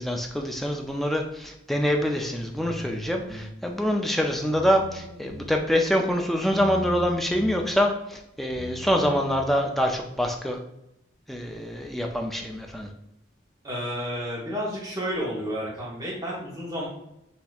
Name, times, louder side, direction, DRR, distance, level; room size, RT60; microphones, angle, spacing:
voice 1, 0.0-10.6 11.3-12.9, equal, ahead, 2 dB, 0.3 m, -25 dB
sound 1, 2.5-3.5 4.5-5.5 6.5-7.5 8.5-9.5, left 1 dB, 80° right, 1.1 m, -39 dB
voice 2, 13.6-16.9, equal, 20° right, -5 dB, 1.0 m, -31 dB
4.1 x 2.7 x 2.3 m, 0.85 s
head